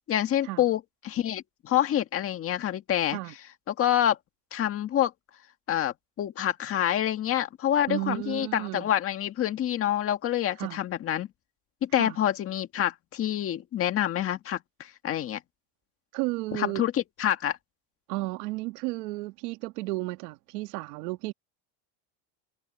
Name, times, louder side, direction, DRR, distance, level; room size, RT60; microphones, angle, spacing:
voice 1, 0.1-3.2 3.7-4.2 4.5-5.1 5.7-11.3 11.8-15.4 16.5-17.6, left 11 dB, 30° left, 1.7 m, -27 dB
voice 2, 7.9-8.9 10.6-10.8 12.0-12.2 16.1-16.8 18.1-21.3, right 21 dB, 75° right, 2.1 m, -33 dB
cardioid pair, 170°, 46 cm